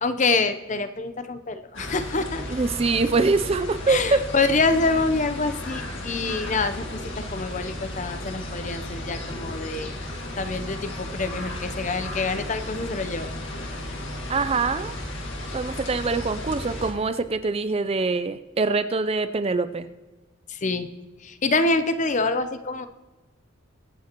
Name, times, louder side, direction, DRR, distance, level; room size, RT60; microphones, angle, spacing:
voice 1, 0.0-2.4 3.9-10.0 10.4-13.3 20.5-20.9 21.2-22.9, left 3 dB, 35° left, 10 dB, 0.6 m, -26 dB
sound 1, 1.7-16.9, left 1 dB, 55° left, 2.1 m, -34 dB
voice 2, 2.5-4.3 14.3-14.9 15.5-19.9, right 3 dB, 25° right, 11 dB, 0.4 m, -24 dB
22.5 x 8.7 x 3.0 m, 1.2 s
head